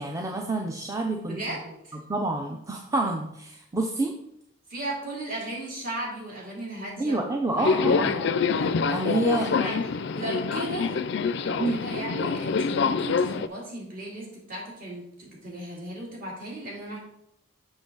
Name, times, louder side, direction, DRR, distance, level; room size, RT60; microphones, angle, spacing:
voice 1, 0.0-1.4 1.9-4.1 7.0-8.3 8.9-9.7 11.6-11.8, right 2 dB, 15° right, 2 dB, 0.5 m, -28 dB
voice 2, 1.3-2.0 4.7-8.2 9.3-9.8 10.1-10.9 11.4-17.0, right 1 dB, 45° right, -4 dB, 2.7 m, -36 dB
Subway metro underground, 7.6-13.5, left 5 dB, 55° left, 0.4 m, -26 dB
7.3 x 6.1 x 3.8 m, 0.81 s
head